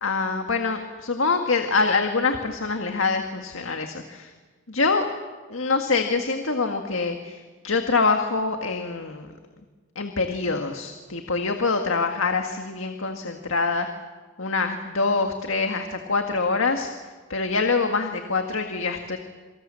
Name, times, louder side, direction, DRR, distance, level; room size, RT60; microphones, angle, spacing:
voice 1, 0.0-4.3 4.7-5.1 5.5-9.3 10.0-13.9 14.4-16.9 17.3-19.2, left 4 dB, 85° left, 5 dB, 1.8 m, -25 dB
27.5 x 25.0 x 7.6 m, 1.4 s
head